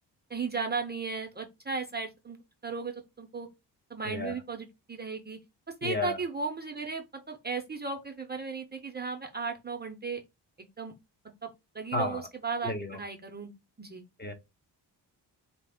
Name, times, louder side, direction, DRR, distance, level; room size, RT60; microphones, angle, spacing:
voice 1, 0.3-2.4 2.6-3.5 3.9-5.4 5.8-10.2 10.6-10.9 11.4-11.5 11.7-13.5 13.8-14.0, right 4 dB, 25° right, 0.5 m, -35 dB
voice 2, 4.0-4.3 5.8-6.2 11.9-12.2 12.6-13.0 14.2-14.3, left 2 dB, 25° left, 0.7 m, -32 dB
4.0 x 2.0 x 3.5 m
cardioid pair, 125°, 42 cm